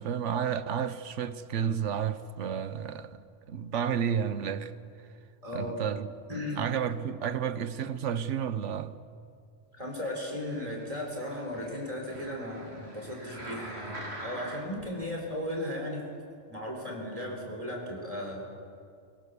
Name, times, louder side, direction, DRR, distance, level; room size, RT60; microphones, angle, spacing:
voice 1, 0.0-4.7 5.5-6.1 6.6-9.0, right 8 dB, 75° right, 1.1 m, -31 dB
voice 2, 5.4-5.8 6.3-6.6 9.8-14.0 14.2-16.0 16.5-18.5, left 1 dB, 30° right, 4.3 m, -36 dB
sound 1, 10.3-14.9 15.5-15.6, right 1 dB, 60° right, 3.3 m, -44 dB
23.0 x 22.0 x 6.9 m
omnidirectional pair, 1.2 m